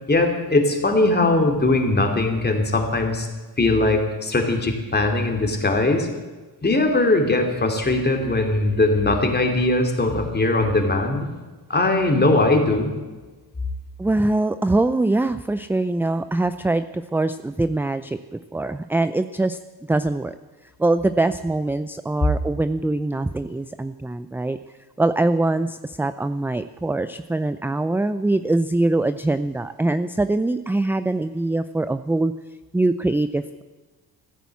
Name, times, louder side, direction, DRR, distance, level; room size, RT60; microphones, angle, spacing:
voice 1, 0.1-3.3 3.6-6.1 6.6-11.3 11.7-12.9, left 2 dB, 25° left, 3 dB, 2.8 m, -20 dB
voice 2, 14.0-19.6 19.9-20.4 20.8-24.6 25.0-32.3 32.7-33.6, right 2 dB, 5° right, 12 dB, 0.4 m, -23 dB
15.0 x 10.5 x 8.3 m, 1.3 s
cardioid pair, 95°, 40 cm